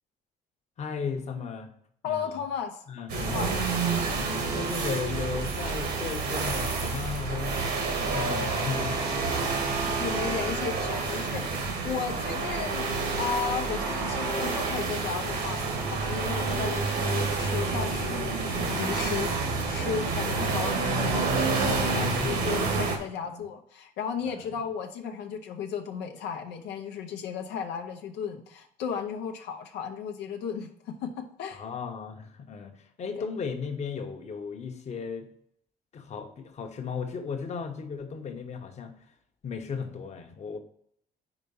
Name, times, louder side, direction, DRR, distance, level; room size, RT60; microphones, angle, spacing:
voice 1, 0.8-1.7 2.0-2.4 2.9-3.6 4.2-9.2 9.6-10.1 11.1-11.2 21.9-22.7 23.2-23.4 24.2-24.5 31.5-35.3 35.9-39.1 39.4-40.6, left 5 dB, 40° left, 4 dB, 1.0 m, -36 dB
voice 2, 2.0-2.8 3.2-3.5 9.9-31.6, left 7 dB, 85° left, 4 dB, 0.8 m, -35 dB
sound 1, 3.1-23.0, right 4 dB, 75° right, 1.5 m, -28 dB
5.0 x 4.4 x 5.5 m, 0.67 s
cardioid pair, 110°, 17 cm